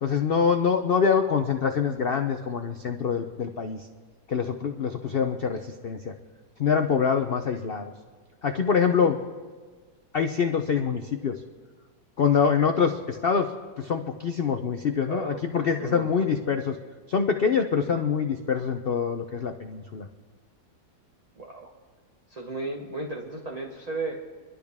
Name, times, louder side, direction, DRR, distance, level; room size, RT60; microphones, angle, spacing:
voice 1, 0.0-3.9 4.3-6.1 6.6-7.9 8.4-9.2 10.1-11.4 12.2-13.5 13.8-16.8 17.1-20.1, left 6 dB, 60° left, 6 dB, 0.6 m, -25 dB
voice 2, 15.1-15.4 15.7-16.3 21.4-21.7 22.3-24.1, right 2 dB, 25° right, 0 dB, 1.0 m, -34 dB
29.0 x 12.0 x 3.6 m, 1.4 s
omnidirectional pair, 1.9 m